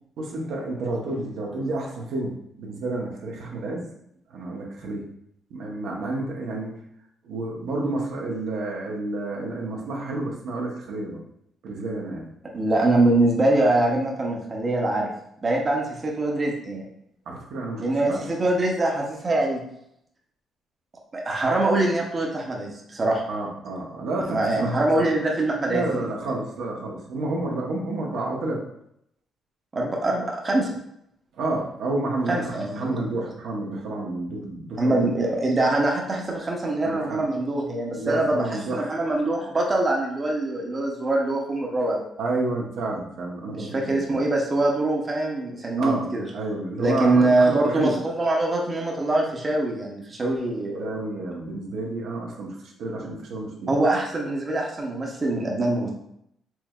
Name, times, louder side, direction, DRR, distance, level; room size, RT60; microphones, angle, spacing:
voice 1, 0.2-2.3 2.6-3.9 4.3-5.1 5.5-6.8 7.2-11.2 11.6-12.3 17.3-18.3 23.3-25.1 25.6-28.6 31.3-35.1 36.8-37.2 37.9-39.1 41.8-41.9 42.2-44.2 45.8-46.1 46.3-48.0 50.8-53.7, right 2 dB, 80° right, -2 dB, 0.8 m, -30 dB
voice 2, 12.5-15.1 15.4-16.8 17.8-19.6 21.1-23.2 24.3-25.9 29.7-30.7 32.3-33.0 34.8-38.4 38.7-42.0 43.5-46.3 46.8-50.9 53.7-55.9, right 2 dB, 30° right, 0 dB, 0.7 m, -23 dB
4.5 x 3.2 x 2.3 m, 0.76 s
cardioid pair, 90°, 0 cm